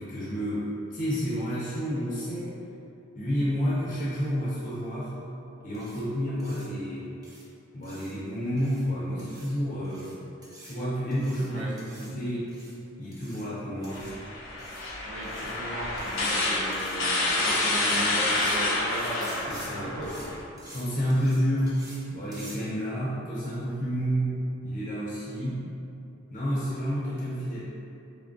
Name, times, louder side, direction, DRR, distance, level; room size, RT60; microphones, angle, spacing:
voice 1, 0.0-2.6 3.1-5.1 5.6-7.1 7.7-10.1 10.6-12.6 13.0-14.1 19.5-19.9 20.7-21.8 22.1-25.6 26.3-27.6, equal, 40° left, -8 dB, 0.6 m, -30 dB
sound 1, 5.7-6.0 6.4-6.7 7.2-7.4 7.8-8.1 8.6-8.8 9.2-9.5 9.8-10.1 10.4-10.8 11.1-11.5 11.8-12.1 12.5-12.7 13.1-13.4 13.8-14.1 14.6-14.8 15.2-15.6 16.0-16.3 16.7-17.0 17.3-18.0 18.3-18.6 18.9-19.7 20.0-20.3 20.6-20.8 21.1-21.4 21.7-22.0 22.3-22.6, right 1 dB, 20° right, 0.6 m, -48 dB
voice 2, 11.4-11.8 15.1-20.4, right 1 dB, 70° right, -3 dB, 0.5 m, -37 dB
sound 2, 13.9-20.4, left 2 dB, 85° left, 0.6 m, -28 dB
3.7 x 3.5 x 2.5 m, 2.7 s
head